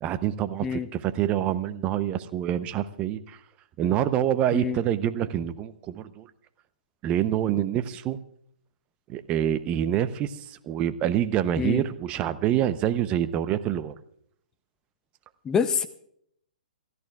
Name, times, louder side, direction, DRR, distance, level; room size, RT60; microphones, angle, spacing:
voice 1, 0.0-3.4 3.8-6.3 7.0-8.2 9.1-13.9, right 11 dB, 25° right, 13 dB, 0.7 m, -26 dB
voice 2, 15.4-15.9, left 6 dB, 15° left, 9 dB, 0.6 m, -26 dB
28.5 x 14.0 x 2.4 m, 0.69 s
figure-of-eight pair, 125°, 5 cm